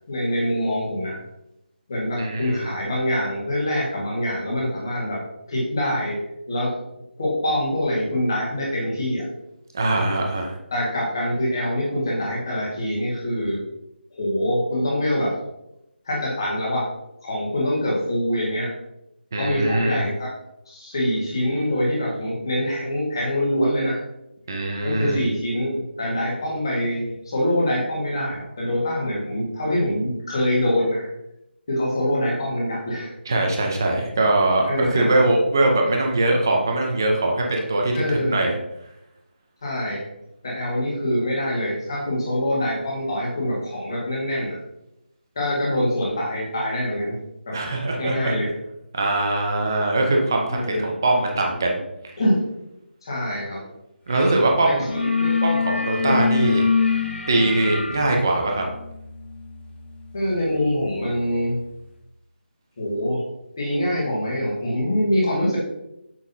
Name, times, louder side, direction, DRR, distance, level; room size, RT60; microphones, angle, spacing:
voice 1, 0.1-1.2 1.9-5.2 5.5-6.2 6.5-6.7 7.2-9.2 10.7-13.6 14.1-15.3 16.0-16.9 17.2-18.7 19.4-20.3 20.7-24.0 24.8-31.1 31.7-33.1 34.7-35.1 37.9-38.4 39.6-40.1 40.4-44.6 45.3-47.2 47.5-47.6 48.0-48.5 50.5-50.9 52.2-52.4 53.0-53.7 54.6-55.3 56.0-56.2 60.1-61.6 62.8-63.2 63.6-65.6, left 1 dB, 25° left, -5 dB, 1.5 m, -24 dB
voice 2, 2.2-2.7 9.7-10.6 19.3-20.0 24.5-25.2 33.3-38.5 47.5-48.3 48.9-51.8 54.1-54.9 55.4-56.7 57.3-58.6, right 2 dB, 20° right, 1 dB, 0.6 m, -22 dB
sound 1, 54.1-54.4 54.7-61.3, left 5 dB, 90° left, 1.0 m, -26 dB
6.1 x 5.7 x 2.7 m, 0.86 s
figure-of-eight pair, 180°, 6 cm